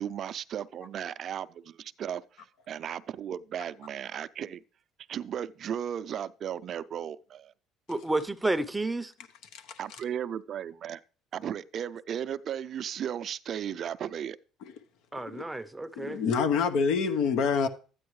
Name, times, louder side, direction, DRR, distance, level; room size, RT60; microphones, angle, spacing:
voice 1, 0.0-4.6 5.1-7.5 9.8-11.0 11.3-14.4, right 9 dB, 50° right, 0.4 m, -35 dB
voice 2, 7.9-9.1 15.1-16.2, right 2 dB, 10° right, 0.6 m, -31 dB
voice 3, 16.0-17.7, left 5 dB, 80° left, 1.0 m, -27 dB
12.5 x 9.4 x 3.2 m
supercardioid pair, 95°, 0 cm